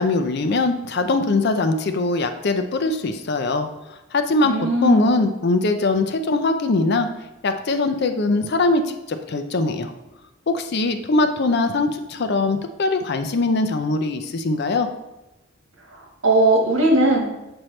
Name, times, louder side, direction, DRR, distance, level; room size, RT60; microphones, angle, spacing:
voice 1, 0.0-3.7 4.1-4.5 4.8-7.1 7.4-8.8 9.1-9.9 10.5-14.9, left 2 dB, 55° left, 7 dB, 0.5 m, -21 dB
voice 2, 4.4-5.1 15.9-17.3, right 2 dB, 75° right, 0 dB, 1.4 m, -19 dB
7.5 x 4.4 x 3.2 m, 0.98 s
head